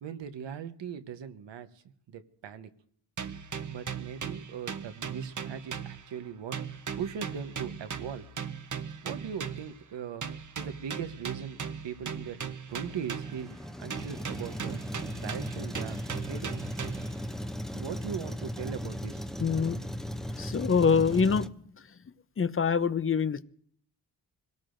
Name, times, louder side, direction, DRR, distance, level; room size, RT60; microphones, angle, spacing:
voice 1, 0.0-2.7 3.7-8.3 9.0-11.6 11.8-13.5 13.8-14.9 15.1-16.6 17.7-19.5, right 7 dB, 80° right, 9 dB, 1.1 m, -40 dB
sound 1, 3.2-6.3 6.5-9.8 10.2-13.5 13.9-17.2, right 7 dB, 45° right, 0.9 m, -38 dB
Truck, 12.7-21.5, equal, ahead, 0.8 m, -37 dB
voice 2, 19.4-19.8 20.4-21.5 22.4-23.4, left 6 dB, 30° left, 15 dB, 0.7 m, -25 dB
25.5 x 17.5 x 2.6 m, 0.63 s
cardioid pair, 50°, 43 cm